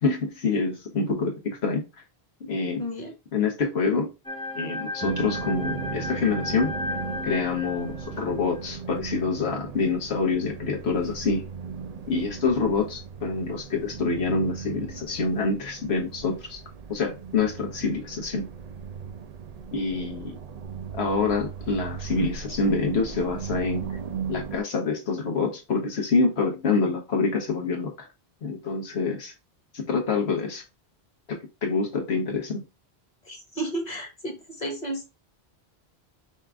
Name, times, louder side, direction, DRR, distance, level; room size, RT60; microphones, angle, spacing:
voice 1, 0.0-1.8 2.4-2.8 3.3-4.1 4.5-6.7 7.2-11.5 12.1-16.6 16.9-18.5 19.7-20.3 21.0-23.9 24.3-28.1 28.4-29.3 29.7-30.6 31.3-32.6, left 4 dB, 85° left, 1.4 m, -26 dB
voice 2, 2.8-3.1 33.3-35.0, right 1 dB, 45° left, 1.3 m, -32 dB
sound 1, 4.2-8.7, left 2 dB, 5° left, 0.4 m, -35 dB
sound 2, 5.0-24.6, right 6 dB, 55° right, 0.5 m, -37 dB
5.3 x 2.5 x 3.4 m
omnidirectional pair, 1.1 m